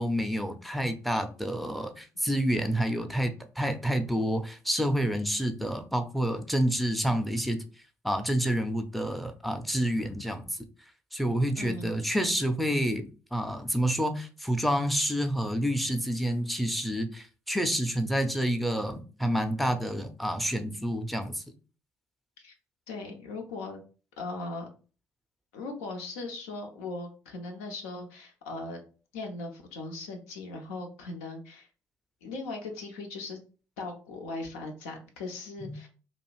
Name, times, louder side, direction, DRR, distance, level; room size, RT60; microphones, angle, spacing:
voice 1, 0.0-7.6 8.0-10.7 11.1-21.4 35.6-35.7, equal, ahead, 0.5 m, -28 dB
voice 2, 11.6-12.2 22.4-22.5 22.9-23.8 24.2-24.7 25.5-28.8 29.1-31.7 32.2-33.4 33.8-35.9, left 3 dB, 75° left, 0.5 m, -39 dB
2.6 x 2.3 x 3.0 m
figure-of-eight pair, 45°, 8 cm